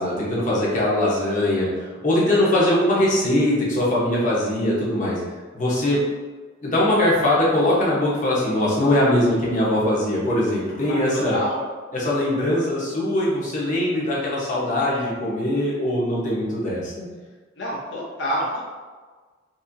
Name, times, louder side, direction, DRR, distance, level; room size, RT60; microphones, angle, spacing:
voice 1, 0.0-5.2 5.5-6.0 6.6-11.4 11.9-17.1, left 1 dB, 45° left, -6 dB, 1.0 m, -21 dB
voice 2, 2.2-2.5 10.8-11.6 17.6-18.6, equal, 65° left, -6 dB, 0.7 m, -28 dB
4.2 x 2.6 x 2.6 m, 1.4 s
head